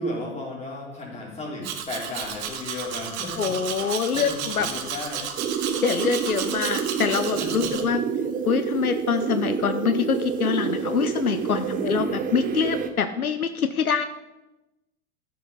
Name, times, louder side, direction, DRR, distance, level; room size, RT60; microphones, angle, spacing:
voice 1, 0.0-3.5 3.8-5.3 7.3-7.8 11.6-11.9, left 1 dB, 15° left, -3 dB, 3.6 m, -34 dB
Domestic sounds home sounds, 1.6-7.8, right 8 dB, 50° right, 1.3 m, -33 dB
voice 2, 3.4-4.7 5.8-8.0 8.5-14.1, left 6 dB, 80° left, 10 dB, 0.7 m, -25 dB
sound 1, 5.4-12.9, right 7 dB, 20° right, 0.7 m, -28 dB
13.5 x 5.7 x 5.0 m, 0.99 s
figure-of-eight pair, 90°, 43 cm